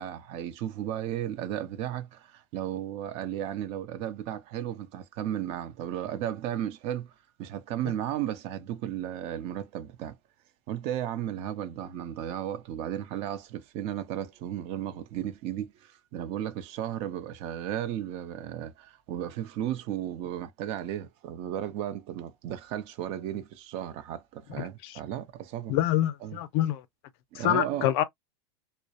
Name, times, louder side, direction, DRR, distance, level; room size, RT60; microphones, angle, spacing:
voice 1, 0.0-7.1 7.4-10.2 10.7-25.7 26.2-26.4 27.3-27.9, right 11 dB, 45° right, 0.5 m, -34 dB
voice 2, 24.6-25.0 25.7-26.8 27.3-28.0, left 12 dB, 60° left, 0.5 m, -26 dB
2.3 x 2.0 x 2.7 m
supercardioid pair, 120°, 14 cm